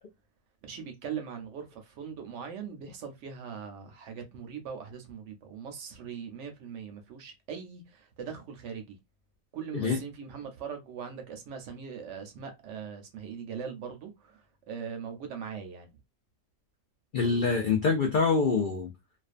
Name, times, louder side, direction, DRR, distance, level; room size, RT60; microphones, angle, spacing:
voice 1, 0.6-8.8 9.5-14.4 14.7-15.9, right 7 dB, 65° right, 0.8 m, -40 dB
voice 2, 17.1-18.9, left 4 dB, 85° left, 0.4 m, -25 dB
2.4 x 2.2 x 2.4 m
omnidirectional pair, 1.4 m